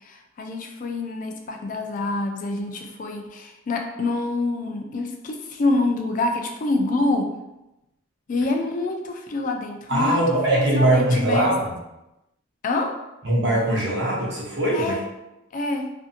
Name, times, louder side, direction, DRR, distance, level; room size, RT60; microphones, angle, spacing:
voice 1, 0.1-7.3 8.3-11.5 12.6-12.9 14.7-15.0 15.5-15.9, left 2 dB, 40° left, 3 dB, 0.3 m, -26 dB
voice 2, 9.9-11.7 13.2-14.9, right 1 dB, 55° right, -5 dB, 0.7 m, -21 dB
2.6 x 2.6 x 2.5 m, 0.94 s
head